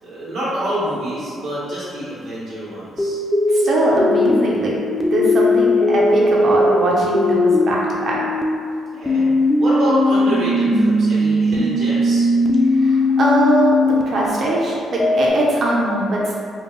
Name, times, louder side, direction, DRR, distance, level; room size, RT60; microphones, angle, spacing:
voice 1, 0.0-3.2 8.9-9.3 9.6-12.3, equal, 80° right, -10 dB, 1.2 m, -26 dB
sound 1, 3.0-8.4 9.1-14.0 15.0-15.3, left 1 dB, 15° left, 0.4 m, -18 dB
voice 2, 3.5-4.7 5.1-8.2 12.7-13.8 14.1-16.3, right 1 dB, 55° right, -4 dB, 0.7 m, -20 dB
3.1 x 2.4 x 3.2 m, 2.2 s
cardioid pair, 90°, 0 cm